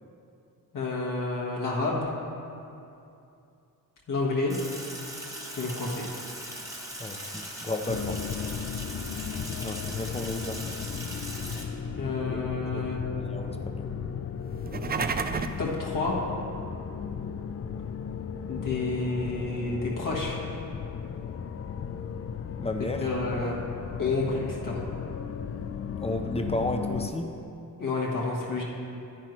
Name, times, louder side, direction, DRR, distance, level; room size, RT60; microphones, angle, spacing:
voice 1, 0.7-2.1 4.1-4.5 5.5-6.0 11.9-13.0 15.6-16.2 18.5-20.4 22.8-23.6 24.0-24.8 27.8-28.6, left 3 dB, 60° left, -4 dB, 1.5 m, -29 dB
Sink (filling or washing), 4.5-11.6, right 1 dB, 10° right, 1.4 m, -40 dB
voice 2, 7.0-8.2 9.6-10.8 12.3-12.4 12.6-13.9 22.6-23.1 26.0-27.3, left 2 dB, 15° left, 4 dB, 0.8 m, -33 dB
sound 1, 7.9-27.1, left 7 dB, 40° left, 0.4 m, -35 dB
sound 2, 14.5-15.7, right 5 dB, 30° right, 0.4 m, -30 dB
10.0 x 9.2 x 3.1 m, 2.7 s
cardioid pair, 85°, 36 cm